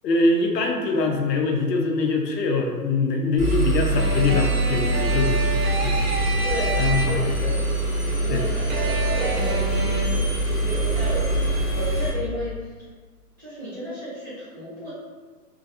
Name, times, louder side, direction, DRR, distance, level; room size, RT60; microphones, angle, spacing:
voice 1, 0.0-5.3 5.8-6.0 6.8-7.2 8.3-8.4, left 3 dB, 75° left, 2 dB, 0.6 m, -23 dB
Engine, 3.4-12.1, right 2 dB, 15° left, 0.8 m, -24 dB
sound 1, 4.0-7.5 8.7-10.0, right 2 dB, 55° right, 0.6 m, -29 dB
voice 2, 4.7-5.3 6.4-7.5 8.2-12.7 13.4-14.9, right 1 dB, 15° right, -15 dB, 0.5 m, -33 dB
2.4 x 2.2 x 2.6 m, 1.4 s
hypercardioid pair, 150°, 50 cm